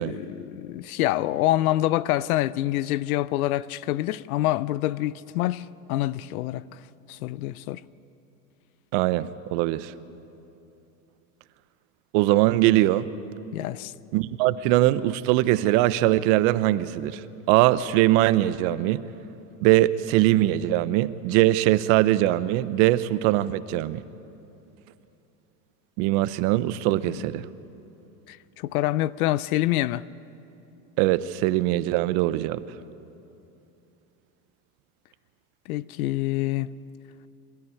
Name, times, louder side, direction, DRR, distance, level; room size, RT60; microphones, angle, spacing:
voice 1, 0.0-6.8 7.1-7.8 13.5-13.9 27.1-27.2 28.3-30.0 35.7-36.7, left 15 dB, 90° left, 0.6 m, -26 dB
voice 2, 8.9-9.9 12.1-13.1 14.1-17.2 17.5-19.0 19.6-24.0 26.0-27.5 31.0-32.6, right 15 dB, 65° right, 0.9 m, -21 dB
25.0 x 13.5 x 9.7 m
supercardioid pair, 115°, 42 cm